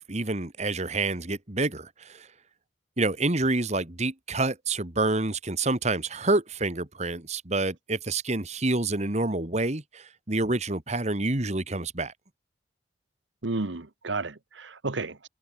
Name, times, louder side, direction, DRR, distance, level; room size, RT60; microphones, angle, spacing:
voice 1, 0.1-2.3 3.0-12.1, right 2 dB, 40° right, 2.0 m, -28 dB
voice 2, 13.4-15.3, right 3 dB, 85° right, 1.3 m, -32 dB
head